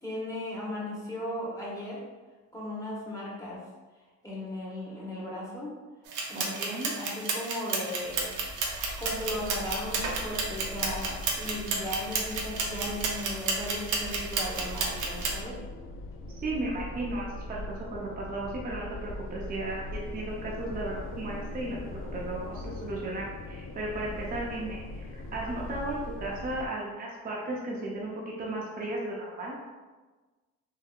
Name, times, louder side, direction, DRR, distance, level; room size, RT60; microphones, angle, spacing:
voice 1, 0.0-2.0 2.5-3.6 4.2-5.8 6.3-8.3 9.0-15.6, left 1 dB, 10° left, -6 dB, 1.1 m, -37 dB
sound 1, 6.1-15.4, right 4 dB, 85° right, 0.6 m, -32 dB
voice 2, 6.3-6.9 16.4-17.6 17.9-29.6, right 2 dB, 30° right, -4 dB, 0.6 m, -35 dB
sound 2, 8.0-26.7, left 1 dB, 45° left, 0.4 m, -41 dB
3.6 x 2.6 x 2.3 m, 1.3 s
cardioid pair, 90°, 30 cm